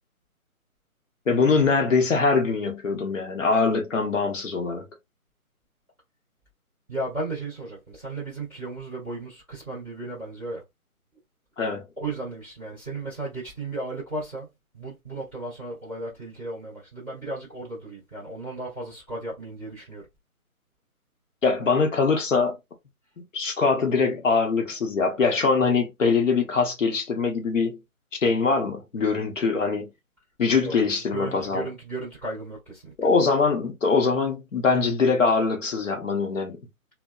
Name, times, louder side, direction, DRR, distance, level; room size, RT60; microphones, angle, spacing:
voice 1, 1.3-4.9 11.6-11.9 21.4-22.6 23.3-27.8 28.2-29.9 30.4-31.7 33.0-36.6, left 4 dB, 60° left, 0.9 m, -23 dB
voice 2, 6.9-10.6 12.0-14.5 14.7-20.0 30.6-30.8 31.1-32.9, right 2 dB, 10° left, 0.8 m, -35 dB
2.6 x 2.2 x 2.2 m
figure-of-eight pair, 160°, 44 cm